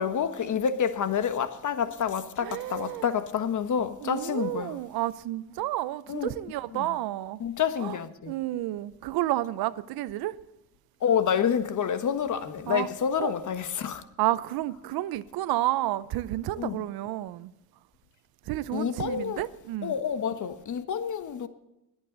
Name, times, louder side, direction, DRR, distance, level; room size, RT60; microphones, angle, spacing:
voice 1, 0.0-4.7 6.1-6.3 6.7-6.9 7.4-8.3 11.0-14.0 16.6-16.8 18.7-19.4 19.8-21.5, left 7 dB, 55° left, 1.4 m, -28 dB
voice 2, 2.4-3.1 4.0-7.4 7.8-8.0 8.3-10.3 12.7-12.9 13.2-13.3 14.2-17.5 18.5-19.9, right 15 dB, 80° right, 0.7 m, -30 dB
21.5 x 9.0 x 4.0 m
supercardioid pair, 70°, 36 cm